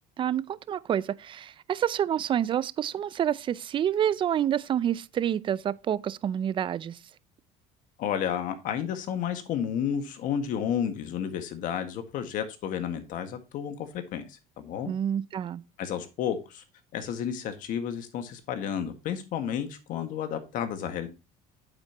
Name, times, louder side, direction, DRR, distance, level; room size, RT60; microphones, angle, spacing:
voice 1, 0.2-7.0 14.9-15.6, right 10 dB, 35° right, 0.4 m, -28 dB
voice 2, 8.0-14.9 15.8-16.6 16.9-21.1, left 8 dB, 65° left, 1.7 m, -31 dB
8.9 x 7.7 x 2.9 m
cardioid pair, 120°, 15 cm